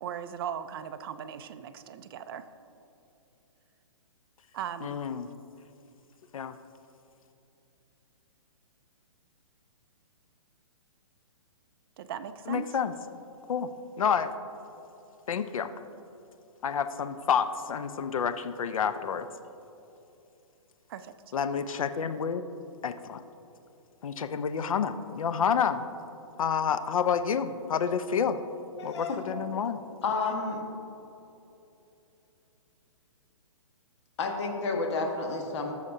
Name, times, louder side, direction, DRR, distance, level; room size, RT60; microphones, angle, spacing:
voice 1, 0.0-2.5 4.5-5.0 12.0-12.8 20.9-21.1, right 9 dB, 45° right, 10 dB, 0.5 m, -38 dB
voice 2, 4.8-5.3 6.3-6.5 12.5-12.9 13.5-13.7 14.0-14.3 15.3-15.7 16.6-19.3 21.3-22.4 22.8-23.2 24.0-25.8 26.4-28.4 28.8-29.8, left 7 dB, 80° left, 11 dB, 0.5 m, -29 dB
voice 3, 28.8-29.2 30.0-30.6 34.2-35.7, left 3 dB, 55° left, 2 dB, 1.5 m, -30 dB
15.0 x 6.5 x 2.7 m, 2.9 s
hypercardioid pair, 145°, 17 cm